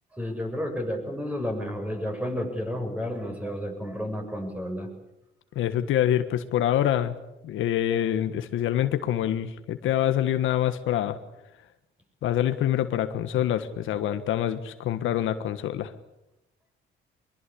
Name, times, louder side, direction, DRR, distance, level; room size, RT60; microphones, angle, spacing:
voice 1, 0.1-4.9, equal, 5° right, 4 dB, 8.0 m, -31 dB
voice 2, 5.5-7.1 7.4-11.2 12.2-15.9, left 11 dB, 85° left, 10 dB, 1.5 m, -25 dB
23.5 x 22.5 x 8.6 m, 0.89 s
cardioid pair, 90°, 20 cm